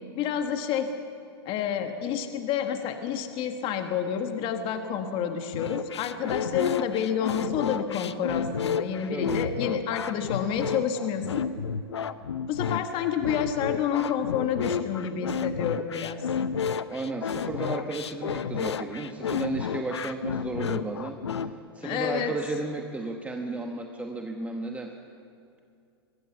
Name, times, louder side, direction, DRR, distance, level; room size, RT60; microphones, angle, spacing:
voice 1, 0.1-0.9 1.4-11.5 12.5-16.2 21.8-22.3, left 8 dB, 40° left, 6 dB, 1.6 m, -29 dB
sound 1, 5.5-21.5, left 7 dB, 90° left, 0.8 m, -31 dB
voice 2, 9.1-9.4 16.9-24.9, right 3 dB, 10° right, 3 dB, 1.2 m, -34 dB
22.5 x 17.0 x 7.1 m, 2.5 s
hypercardioid pair, 115°, 14 cm